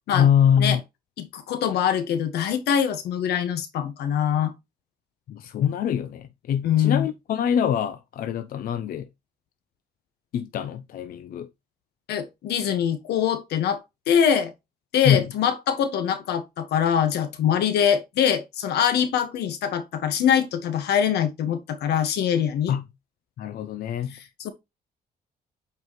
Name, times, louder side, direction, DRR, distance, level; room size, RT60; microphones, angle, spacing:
voice 1, 0.1-0.8 5.3-9.1 10.3-11.5 15.0-15.3 22.7-22.8 23.4-24.1, left 9 dB, 60° left, 0.7 m, -24 dB
voice 2, 1.2-4.5 6.6-7.1 12.1-13.8 14.1-14.5 14.9-22.7 24.1-24.5, left 8 dB, 90° left, 1.5 m, -23 dB
8.2 x 4.7 x 3.1 m
cardioid pair, 145°, 16 cm